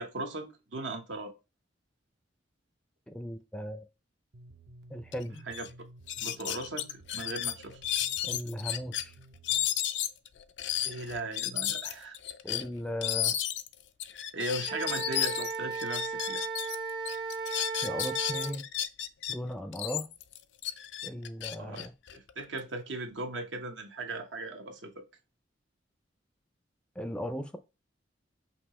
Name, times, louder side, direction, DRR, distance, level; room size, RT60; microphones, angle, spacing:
voice 1, 0.0-1.3 5.5-5.7 6.2-7.8 10.8-12.2 14.3-16.4 21.6-25.0, right 2 dB, 80° right, 1.0 m, -38 dB
voice 2, 3.1-3.8 4.9-5.4 8.2-9.1 12.4-13.4 17.8-18.7 19.3-20.1 21.0-21.9 27.0-27.6, equal, 5° left, 0.4 m, -37 dB
sound 1, 4.3-9.7, right 2 dB, 60° right, 0.7 m, -54 dB
sound 2, 5.1-5.2 5.5-5.7 6.1-9.0 9.4-16.8 17.0-19.3 19.7-22.6, left 12 dB, 70° left, 0.4 m, -33 dB
Wind instrument woodwind instrument, 14.6-18.5, right 4 dB, 25° right, 0.7 m, -35 dB
5.4 x 2.8 x 3.1 m
head